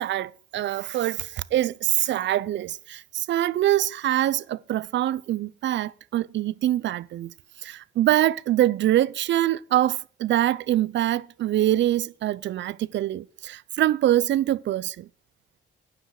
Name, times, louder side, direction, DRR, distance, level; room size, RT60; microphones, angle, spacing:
voice 1, 0.0-7.3 7.6-15.1, right 13 dB, 65° right, 0.6 m, -24 dB
12.0 x 9.8 x 4.8 m
cardioid pair, 90°, 20 cm